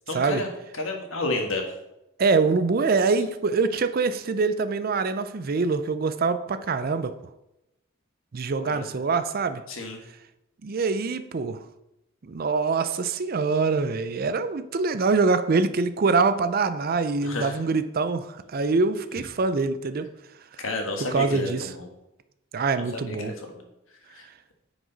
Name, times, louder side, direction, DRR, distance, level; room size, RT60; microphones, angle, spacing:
voice 1, 0.1-1.6 8.6-8.9 9.7-10.0 17.2-17.6 20.6-21.9 23.0-23.6 24.1-24.3, left 2 dB, 65° left, 3 dB, 1.5 m, -31 dB
voice 2, 2.2-7.1 8.3-9.6 10.6-11.6 12.2-20.1 21.1-21.7 22.5-23.3, right 4 dB, 45° right, 12 dB, 0.5 m, -24 dB
9.7 x 5.0 x 4.0 m, 0.89 s
head